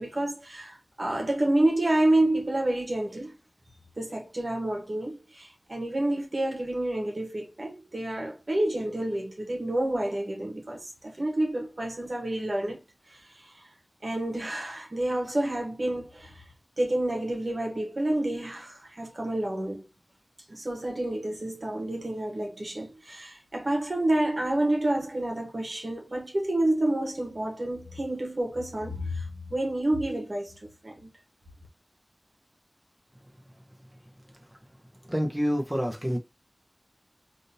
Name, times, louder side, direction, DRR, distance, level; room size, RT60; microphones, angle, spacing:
voice 1, 0.0-3.3 4.0-12.8 13.1-13.6 14.0-16.4 16.8-19.8 20.5-30.5 30.8-31.1, right 1 dB, 60° right, 1.2 m, -29 dB
voice 2, 35.1-36.2, equal, 10° right, 0.8 m, -27 dB
3.6 x 2.6 x 2.7 m
wide cardioid pair, 60°, 0 cm